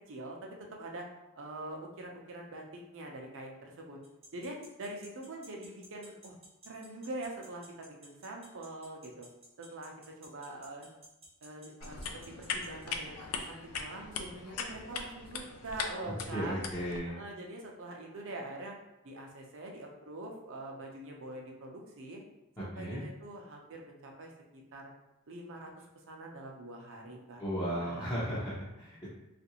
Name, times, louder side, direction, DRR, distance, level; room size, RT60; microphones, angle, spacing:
voice 1, 0.1-1.1 1.4-4.0 4.3-6.4 6.7-9.3 9.6-10.9 11.4-12.0 12.5-16.6 17.1-18.8 19.0-22.2 22.6-24.9 25.3-28.2, right 1 dB, 60° right, 0 dB, 0.6 m, -44 dB
sound 1, 4.0-12.8, right 1 dB, 30° right, 0.7 m, -54 dB
sound 2, 11.8-17.0, left 5 dB, 85° left, 0.4 m, -40 dB
voice 2, 16.0-17.2 22.6-23.0 27.4-29.1, equal, 15° left, -10 dB, 0.6 m, -35 dB
3.1 x 2.5 x 2.9 m, 0.95 s
head